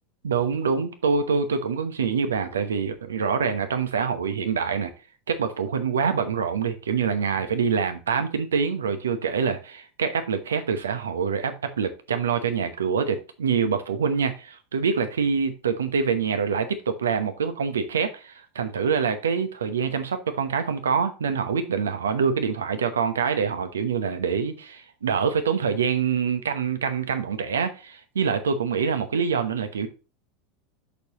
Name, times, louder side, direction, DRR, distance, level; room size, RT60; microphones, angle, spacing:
voice 1, 0.2-4.9 5.3-29.9, right 6 dB, 75° right, 1.0 m, -25 dB
8.3 x 6.6 x 3.1 m
figure-of-eight pair, 80°, 0 cm